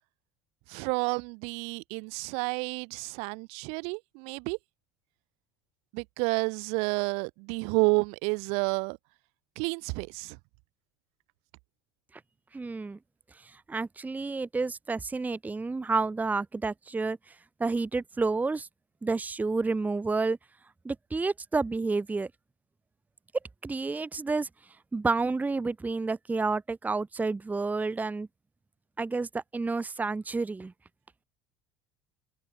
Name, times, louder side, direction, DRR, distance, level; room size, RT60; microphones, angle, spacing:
voice 1, 0.7-4.6 5.9-9.0 9.6-10.4, right 33 dB, 55° right, 1.2 m, -30 dB
voice 2, 12.5-13.0 13.7-17.3 17.6-18.7 19.0-20.4 20.8-22.3 23.6-24.5 24.9-28.3 29.0-30.7, right 3 dB, 15° right, 0.8 m, -30 dB
figure-of-eight pair, 60°, 12 cm